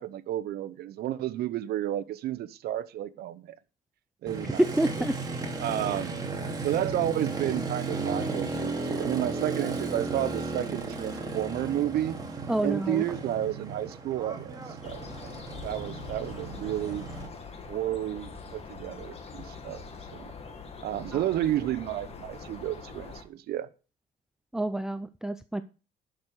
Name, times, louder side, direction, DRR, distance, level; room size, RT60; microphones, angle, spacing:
voice 1, 0.0-3.5 4.2-4.6 5.6-6.2 6.6-12.2 12.6-15.0 15.6-17.1 17.7-19.8 20.1-20.3 20.8-23.7, right 12 dB, 70° right, 0.9 m, -31 dB
Motorcycle, 4.3-17.3, right 3 dB, 20° right, 2.6 m, -35 dB
voice 2, 4.6-5.2 12.5-13.0 21.1-21.2 24.5-25.6, right 1 dB, 5° right, 0.5 m, -27 dB
sound 1, 14.8-23.2, left 4 dB, 35° left, 2.0 m, -43 dB
11.5 x 6.3 x 4.9 m
cardioid pair, 110°, 17 cm